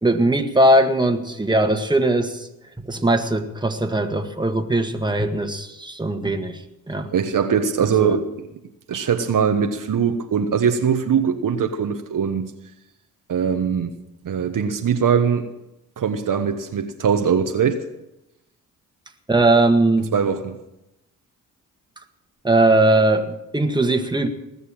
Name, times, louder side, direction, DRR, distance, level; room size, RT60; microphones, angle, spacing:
voice 1, 0.0-2.5 2.8-7.1 8.0-8.2 19.3-20.1 22.4-24.3, right 2 dB, 10° right, 1.8 m, -19 dB
voice 2, 7.1-8.5 8.9-12.5 13.3-13.9 14.2-15.5 16.0-17.8 20.1-20.6, right 7 dB, 55° right, 1.3 m, -21 dB
19.0 x 7.0 x 8.8 m
supercardioid pair, 50°, 38 cm